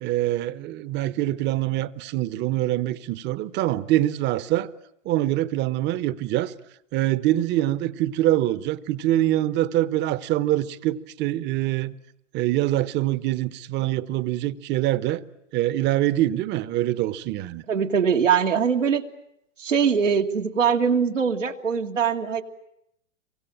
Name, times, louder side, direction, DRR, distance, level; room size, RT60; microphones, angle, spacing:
voice 1, 0.0-4.7 5.0-6.5 6.9-11.9 12.3-15.2 15.5-17.6, right 14 dB, 30° right, 1.0 m, -24 dB
voice 2, 17.7-19.1 19.6-22.4, right 7 dB, 90° right, 2.3 m, -22 dB
26.5 x 24.5 x 8.9 m
hypercardioid pair, 120°, 37 cm